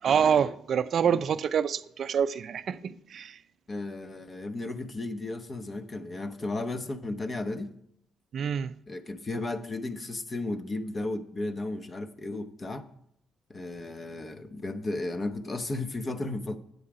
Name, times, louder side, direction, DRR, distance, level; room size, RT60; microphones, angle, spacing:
voice 1, 0.0-3.4 8.3-8.7, right 7 dB, 60° right, 0.4 m, -26 dB
voice 2, 3.7-7.7 8.9-12.9 13.5-16.6, left 2 dB, 35° left, 1.0 m, -34 dB
9.7 x 8.8 x 4.9 m
cardioid pair, 90°, 0 cm